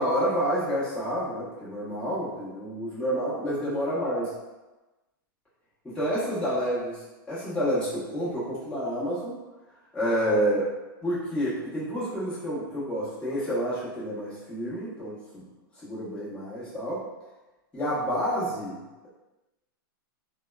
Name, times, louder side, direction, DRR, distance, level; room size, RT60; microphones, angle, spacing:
voice 1, 0.0-4.3 5.8-7.0 7.3-9.4 9.9-10.7 11.0-15.4 15.8-17.0 17.7-18.8, equal, 10° left, -11 dB, 1.1 m, -29 dB
2.7 x 2.1 x 2.2 m, 1.1 s
hypercardioid pair, 125°, 12 cm